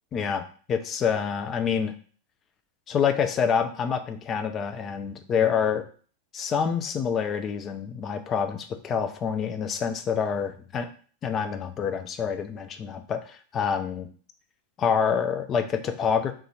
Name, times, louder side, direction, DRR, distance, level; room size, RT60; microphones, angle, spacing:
voice 1, 0.1-0.4 0.7-1.9 2.9-5.9 6.3-10.9 11.2-14.1 14.8-16.3, left 7 dB, 30° left, 7 dB, 0.5 m, -27 dB
3.8 x 2.6 x 4.2 m, 0.43 s
figure-of-eight pair, 90°, 0 cm